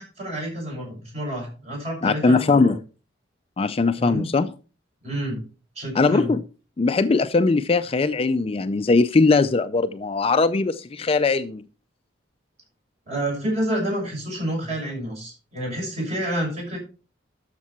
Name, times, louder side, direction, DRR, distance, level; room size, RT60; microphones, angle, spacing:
voice 1, 0.0-2.8 3.9-4.3 5.0-5.4 5.7-6.3 13.1-16.8, right 1 dB, 35° right, 6.3 m, -29 dB
voice 2, 2.0-2.8 3.6-4.5 6.0-6.4 6.8-11.6, left 3 dB, 30° left, 0.4 m, -20 dB
12.0 x 6.8 x 4.3 m
head